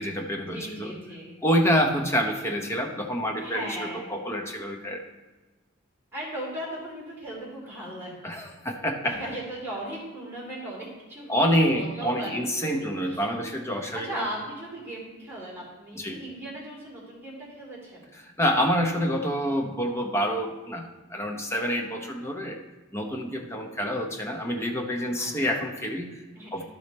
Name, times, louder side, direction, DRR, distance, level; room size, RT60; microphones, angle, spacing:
voice 1, 0.0-0.9 1.4-5.0 8.2-9.2 11.3-14.3 15.9-16.2 18.2-22.6 22.9-26.2 26.5-26.6, equal, 15° left, 2 dB, 0.8 m, -27 dB
voice 2, 0.5-1.4 3.4-4.1 6.1-8.5 9.0-12.3 12.6-13.2 13.7-18.1 25.2-25.5 26.3-26.6, right 1 dB, 10° right, -7 dB, 2.9 m, -38 dB
12.0 x 5.0 x 4.2 m, 1.2 s
head